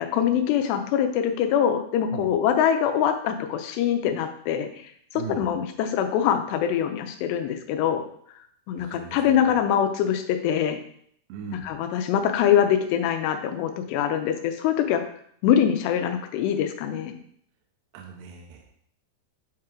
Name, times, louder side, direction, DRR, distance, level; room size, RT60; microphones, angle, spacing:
voice 1, 0.0-4.7 5.4-8.0 8.7-10.8 11.6-15.0 15.4-17.2, left 9 dB, 90° left, 6 dB, 2.9 m, -23 dB
voice 2, 5.1-5.5 8.8-9.6 11.3-11.7 17.9-18.7, right 7 dB, 75° right, 1 dB, 2.3 m, -39 dB
8.5 x 3.8 x 4.4 m, 0.64 s
omnidirectional pair, 4.8 m